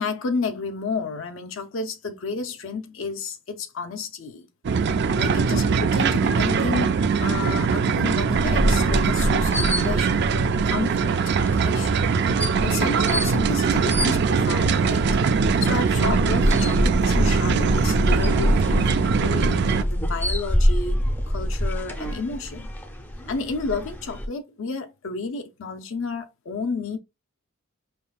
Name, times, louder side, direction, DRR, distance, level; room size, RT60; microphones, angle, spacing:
voice 1, 0.0-4.5 5.1-10.2 10.7-12.0 12.6-15.1 15.6-22.7 23.3-27.0, left 4 dB, 65° left, 0.5 m, -31 dB
sound 1, 4.6-19.8, right 5 dB, 50° right, 0.3 m, -22 dB
sound 2, 8.3-24.3, equal, 10° left, 0.5 m, -26 dB
5.4 x 3.6 x 2.3 m
head